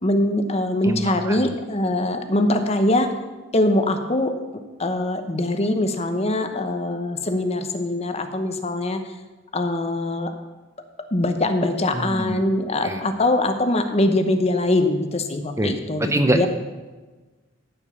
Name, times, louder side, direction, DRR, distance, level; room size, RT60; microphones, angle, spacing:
voice 1, 0.0-3.1 3.5-4.4 4.8-9.0 9.5-10.3 11.1-16.5, left 1 dB, 30° left, 7 dB, 0.9 m, -22 dB
voice 2, 0.8-1.5 11.9-12.4 12.8-13.0 15.6-15.7 16.0-16.5, right 1 dB, 15° right, 6 dB, 0.7 m, -24 dB
13.5 x 5.3 x 7.1 m, 1.2 s
head